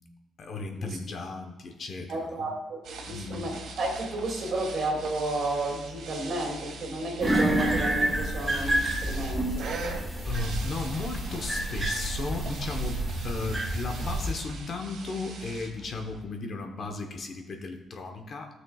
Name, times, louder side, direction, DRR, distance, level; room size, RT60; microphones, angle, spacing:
voice 1, 0.4-2.5 3.1-3.5 10.2-18.5, left 3 dB, 45° left, 3 dB, 1.0 m, -35 dB
voice 2, 2.1-9.7, right 2 dB, 55° right, 0 dB, 2.4 m, -32 dB
sound 1, 2.8-16.2, right 2 dB, 80° right, 1.8 m, -42 dB
sound 2, 7.2-14.3, right 1 dB, 10° right, 1.4 m, -29 dB
17.0 x 6.3 x 2.4 m, 1.2 s
cardioid pair, 170°, 0 cm